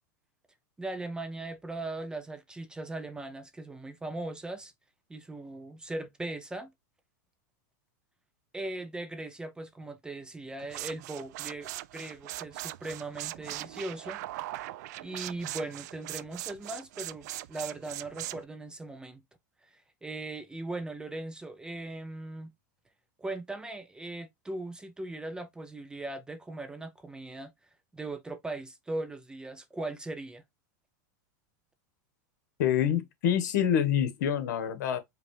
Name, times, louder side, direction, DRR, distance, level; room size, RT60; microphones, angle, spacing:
voice 1, 0.8-4.7 5.1-6.7 8.5-14.2 15.0-19.2 19.7-22.5 23.2-27.5 27.9-30.4, right 2 dB, 10° right, 0.5 m, -39 dB
sound 1, 10.6-18.4, right 16 dB, 65° right, 0.4 m, -40 dB
voice 2, 32.6-35.0, left 9 dB, 70° left, 1.4 m, -26 dB
5.1 x 2.4 x 3.2 m
supercardioid pair, 140°, 10 cm